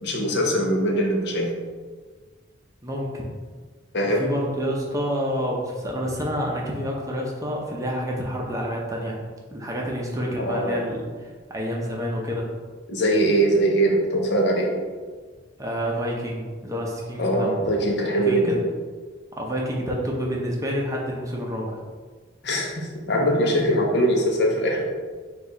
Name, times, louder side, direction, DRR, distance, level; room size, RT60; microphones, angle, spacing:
voice 1, 0.0-1.5 3.9-4.2 10.4-10.8 12.9-14.8 17.2-18.7 22.4-24.9, right 1 dB, 60° left, 0 dB, 0.7 m, -22 dB
voice 2, 2.8-3.2 4.0-9.2 9.5-12.5 15.6-18.5 19.3-21.8, equal, 20° right, -2 dB, 0.6 m, -28 dB
4.5 x 2.4 x 3.9 m, 1.5 s
head